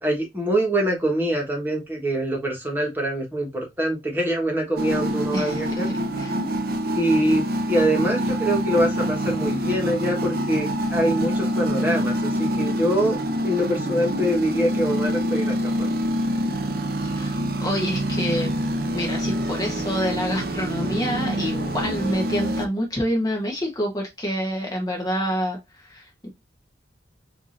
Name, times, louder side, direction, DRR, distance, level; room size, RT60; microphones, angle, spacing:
voice 1, 0.0-5.9 6.9-13.2 13.4-16.0, right 1 dB, 10° right, 0 dB, 1.2 m, -24 dB
sound 1, 4.8-22.7, equal, 55° right, 0.7 m, -26 dB
voice 2, 5.3-6.4 17.0-17.3 17.6-18.5 18.9-26.3, equal, 20° left, 0 dB, 0.9 m, -27 dB
4.7 x 2.7 x 2.5 m, 0.20 s
head